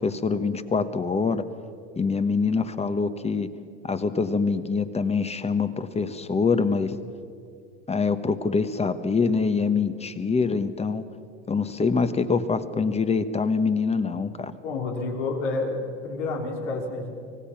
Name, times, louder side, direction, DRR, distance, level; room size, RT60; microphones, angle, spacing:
voice 1, 0.0-1.4 2.0-3.5 3.8-7.0 7.9-11.0 11.5-14.5, left 4 dB, 20° left, 11 dB, 1.2 m, -25 dB
voice 2, 14.6-17.1, left 3 dB, 80° left, 1 dB, 3.8 m, -29 dB
25.5 x 17.5 x 6.0 m, 2.3 s
hypercardioid pair, 95°, 35 cm